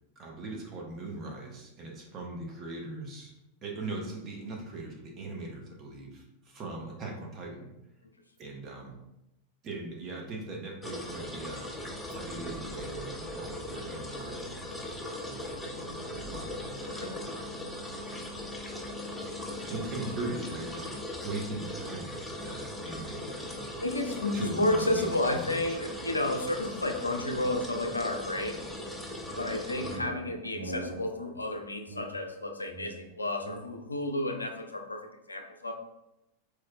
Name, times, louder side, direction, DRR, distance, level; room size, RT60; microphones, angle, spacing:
voice 1, 0.2-3.3 3.6-7.7 8.4-8.9 9.6-11.7 12.1-14.9 15.2-17.0 19.7-21.0 21.2-23.7 24.3-25.8, right 2 dB, 30° right, 0 dB, 0.7 m, -40 dB
sound 1, 10.8-30.0, left 1 dB, 5° left, 0.4 m, -39 dB
voice 2, 16.9-17.3 23.8-28.6 29.4-35.7, left 1 dB, 80° left, 5 dB, 0.3 m, -31 dB
sound 2, 29.3-34.0, right 1 dB, 80° right, 0.5 m, -43 dB
4.4 x 2.1 x 2.3 m, 0.90 s
figure-of-eight pair, 90°, 0 cm